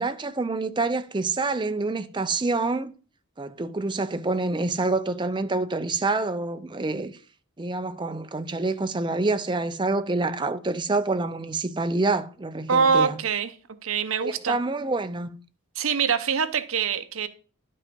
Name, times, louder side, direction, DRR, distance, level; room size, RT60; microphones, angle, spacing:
voice 1, 0.0-2.9 3.4-7.1 7.6-13.2 14.2-15.4, right 3 dB, 20° right, 0.5 m, -27 dB
voice 2, 12.7-13.5 13.8-14.6 15.8-17.3, right 6 dB, 65° right, 0.8 m, -24 dB
11.0 x 5.4 x 5.2 m
head